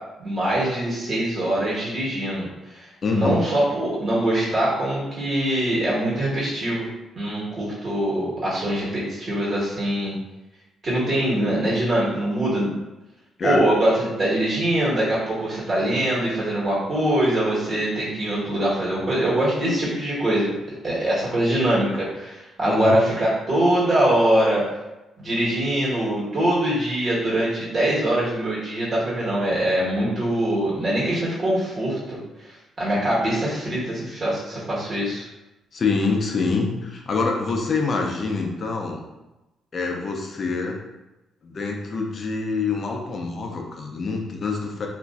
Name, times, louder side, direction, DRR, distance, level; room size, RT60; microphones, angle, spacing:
voice 1, 0.2-6.9 7.1-10.1 10.8-12.7 13.4-24.6 25.2-32.5 32.8-35.2, right 1 dB, 40° right, -7 dB, 1.3 m, -23 dB
voice 2, 3.0-3.4 13.4-13.6 22.6-23.0 35.7-39.0 39.7-40.8 41.4-44.9, left 4 dB, 45° left, 1 dB, 0.5 m, -25 dB
2.9 x 2.5 x 2.4 m, 1.0 s
cardioid pair, 90°, 0 cm